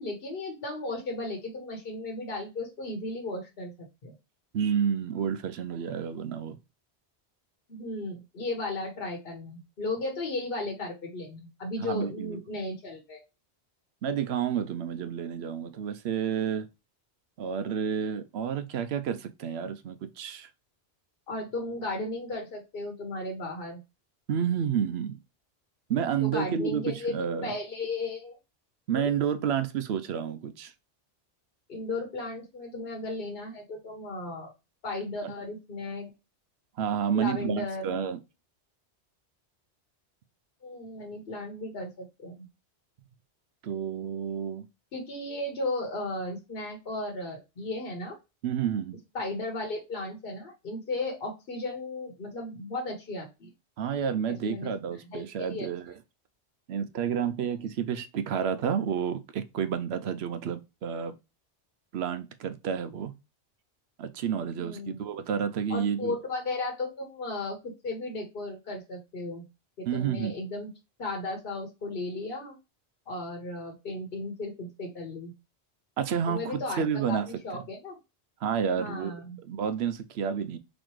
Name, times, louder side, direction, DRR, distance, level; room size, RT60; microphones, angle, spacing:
voice 1, 0.0-3.7 4.0-4.1 7.7-13.2 21.3-23.8 26.2-27.1 27.4-28.4 28.9-29.1 31.7-34.5 34.8-36.1 37.1-37.9 40.6-42.5 44.9-48.2 49.1-53.5 54.3-54.7 55.1-55.7 64.6-65.0 65.7-69.4 69.8-70.7 71.0-72.5 73.1-75.3 76.3-78.0 78.7-79.4, left 2 dB, 60° left, 1.2 m, -35 dB
voice 2, 4.5-6.6 11.8-12.4 14.0-16.7 17.4-20.5 24.3-25.2 25.9-27.5 28.9-30.7 35.2-35.3 36.8-38.2 43.6-44.7 48.4-49.0 53.8-55.9 56.7-61.1 61.9-63.1 64.0-66.1 69.9-70.3 76.0-77.3 77.5-77.6 78.4-79.1 79.4-80.6, right 8 dB, 75° right, 0.8 m, -30 dB
4.2 x 2.9 x 3.0 m
omnidirectional pair, 1.1 m